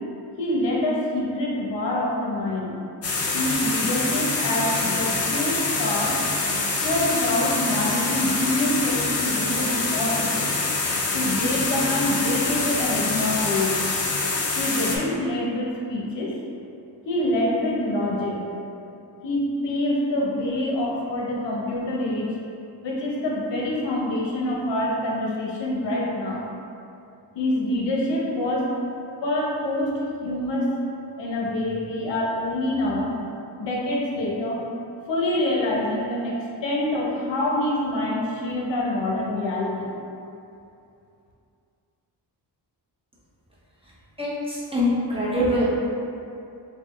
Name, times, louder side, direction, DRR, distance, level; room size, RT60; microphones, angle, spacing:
voice 1, 0.4-2.7 3.3-6.2 6.8-10.5 11.1-13.8 14.6-16.3 17.0-18.4 19.2-22.3 22.8-26.5 27.3-28.7 29.2-29.9 30.2-30.7 31.2-33.2 33.6-34.6 35.1-39.9, left 1 dB, 75° left, -4 dB, 0.8 m, -26 dB
sound 1, 3.0-15.0, left 3 dB, 35° left, 0.5 m, -25 dB
voice 2, 44.2-45.7, equal, 15° right, -8 dB, 0.6 m, -23 dB
4.4 x 2.1 x 3.0 m, 2.6 s
wide cardioid pair, 135°, 43 cm